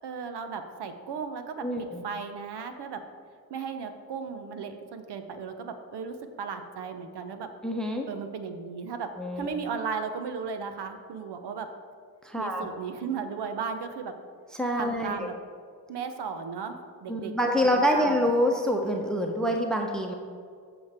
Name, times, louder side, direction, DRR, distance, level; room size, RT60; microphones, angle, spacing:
voice 1, 0.0-3.0 3.5-7.5 8.1-9.1 9.4-11.7 12.4-14.1 14.8-15.3 15.9-17.3 17.6-18.2, right 6 dB, 60° right, 7 dB, 1.0 m, -35 dB
voice 2, 1.6-2.0 7.6-8.1 9.2-9.5 12.2-12.7 14.6-15.3 17.1-20.1, equal, ahead, 2 dB, 1.0 m, -26 dB
14.5 x 5.0 x 3.6 m, 2.1 s
hypercardioid pair, 40°, 46 cm